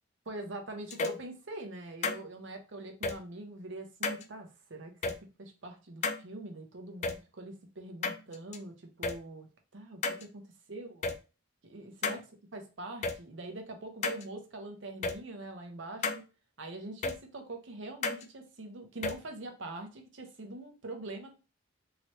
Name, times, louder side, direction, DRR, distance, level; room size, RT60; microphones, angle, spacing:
voice 1, 0.3-5.1 5.4-9.5 9.7-11.1 11.6-12.2 12.5-16.2 16.6-21.4, right 2 dB, 65° right, 4 dB, 0.8 m, -44 dB
sound 1, 0.9-1.2 2.0-2.2 3.0-3.1 4.0-4.2 5.0-5.1 6.0-6.2 7.0-7.1 8.0-8.6 9.0-9.1 10.0-10.2 11.0-11.1 12.0-12.2 13.0-13.1 14.0-14.2 15.0-15.1 16.0-16.2 17.0-17.1 18.0-18.2 19.0-19.1, left 4 dB, 35° left, 0.3 m, -31 dB
3.1 x 2.9 x 2.9 m, 0.32 s
head